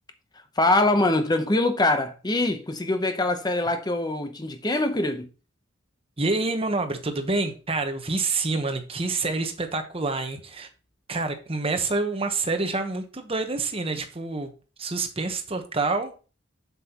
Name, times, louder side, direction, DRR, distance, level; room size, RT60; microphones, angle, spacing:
voice 1, 0.6-5.3, left 2 dB, 20° left, 0.8 m, -23 dB
voice 2, 6.2-10.7 11.1-14.5 14.8-16.1, right 3 dB, 30° right, 1.0 m, -27 dB
7.5 x 7.2 x 2.9 m
head